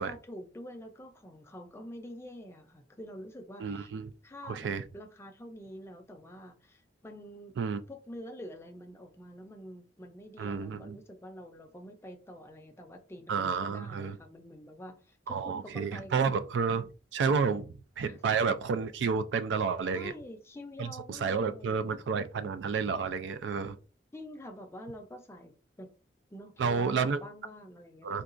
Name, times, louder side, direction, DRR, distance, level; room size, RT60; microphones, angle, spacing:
voice 1, 0.0-3.9 4.2-7.6 7.9-16.4 17.3-17.6 18.0-18.2 19.9-22.1 24.1-25.5 25.8-25.9 26.3-28.2, equal, 15° left, 0.5 m, -47 dB
voice 2, 3.6-4.1 4.4-4.8 7.6-7.8 10.4-11.0 13.3-14.2 15.3-17.7 18.0-20.1 20.8-23.8 26.6-27.2 28.0-28.2, right 5 dB, 75° right, 0.3 m, -30 dB
3.8 x 2.3 x 2.5 m
head